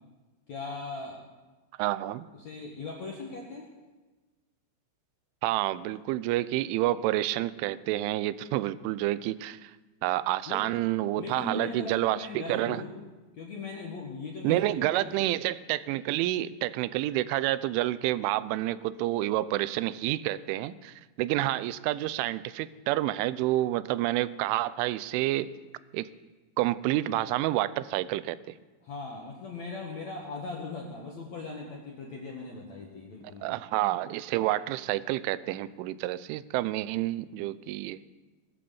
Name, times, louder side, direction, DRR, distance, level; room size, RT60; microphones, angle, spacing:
voice 1, 0.5-1.2 2.3-3.7 10.5-10.6 11.2-13.0 13.3-14.6 14.9-15.2 28.8-33.5, left 3 dB, 55° left, -1 dB, 2.0 m, -39 dB
voice 2, 1.8-2.3 5.4-9.7 10.0-12.8 14.4-25.5 25.9-26.1 26.6-28.4 33.4-38.0, right 15 dB, 85° right, 16 dB, 3.1 m, -29 dB
21.5 x 8.6 x 7.1 m, 1.2 s
omnidirectional pair, 5.5 m